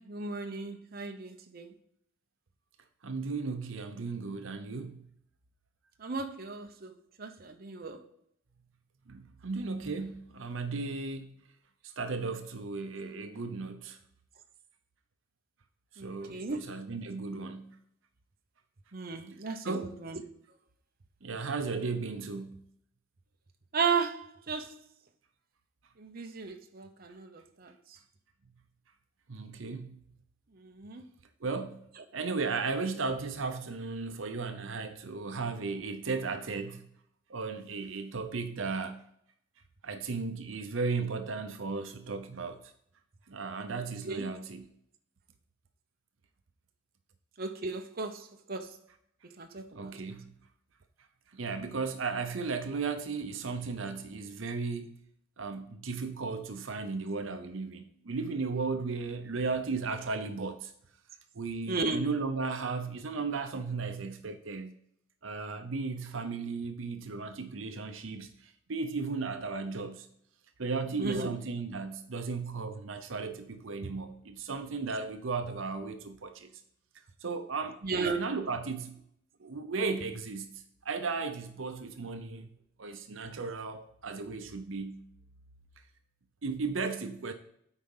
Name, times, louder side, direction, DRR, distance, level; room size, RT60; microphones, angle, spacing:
voice 1, 0.0-1.7 6.0-8.0 16.0-16.7 18.9-20.2 23.7-24.7 26.0-27.7 30.6-31.0 43.8-44.3 47.4-48.8 49.2-49.9 61.7-62.1 71.0-71.3 75.0-75.1 77.8-78.3, right 4 dB, 50° right, 0.9 m, -35 dB
voice 2, 3.0-5.0 9.1-11.4 11.8-14.0 16.0-17.8 19.6-19.9 21.2-22.6 29.3-30.0 31.4-31.9 32.1-36.9 37.3-39.0 39.8-42.6 43.3-44.7 49.7-50.3 51.3-55.0 55.4-60.7 61.3-64.7 65.2-70.1 70.6-76.5 77.2-78.9 79.4-80.5 80.8-82.5 82.8-85.0 86.4-87.3, right 4 dB, 75° right, 0.7 m, -35 dB
8.3 x 5.0 x 5.5 m
head